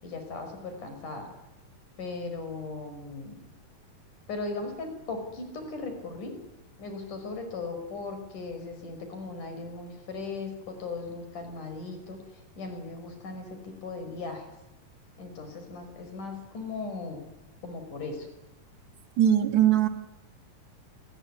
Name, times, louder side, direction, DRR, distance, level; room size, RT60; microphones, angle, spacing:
voice 1, 0.0-1.3 2.0-3.4 4.3-6.3 6.8-14.5 15.2-17.2 17.6-18.3, left 3 dB, 70° left, 7 dB, 6.8 m, -38 dB
voice 2, 19.2-19.9, right 10 dB, 65° right, 8 dB, 2.7 m, -20 dB
29.0 x 20.5 x 9.8 m, 0.98 s
omnidirectional pair, 3.8 m